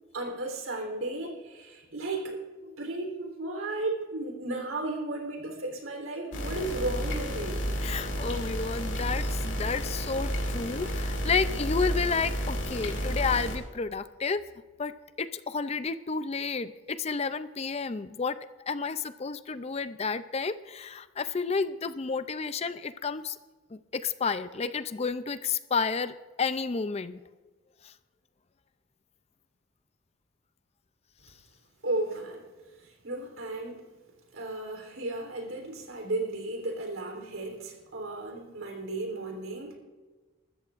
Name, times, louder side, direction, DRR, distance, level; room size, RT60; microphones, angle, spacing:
voice 1, 0.1-7.6 31.8-32.5 32.8-33.9 34.3-39.8, right 2 dB, 90° right, 2 dB, 3.5 m, -34 dB
sound 1, 6.3-13.6, equal, 60° left, 2.7 m, -31 dB
voice 2, 7.8-14.4 14.8-18.4 18.7-23.4 23.7-27.2 27.8-27.9, left 5 dB, 30° left, 13 dB, 0.4 m, -31 dB
23.0 x 13.5 x 2.5 m, 1.3 s
head